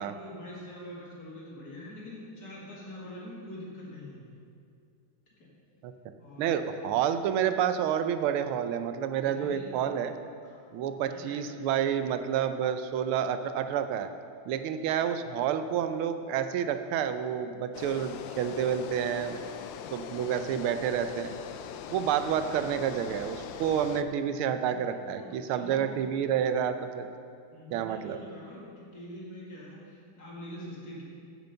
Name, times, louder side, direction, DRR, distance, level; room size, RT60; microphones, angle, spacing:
voice 1, 0.0-4.4 5.4-5.5 6.2-6.8 9.2-9.7 10.4-11.6 24.7-24.8 25.2-25.9 27.5-31.0, left 1 dB, 50° left, -5 dB, 2.4 m, -45 dB
voice 2, 6.4-10.1 10.7-14.1 14.5-19.4 19.9-21.3 21.9-27.1 27.7-28.2, right 8 dB, 85° right, 9 dB, 1.5 m, -29 dB
sound 1, 17.7-24.0, left 8 dB, 75° left, 1.2 m, -41 dB
9.0 x 8.0 x 6.7 m, 2.3 s
omnidirectional pair, 2.3 m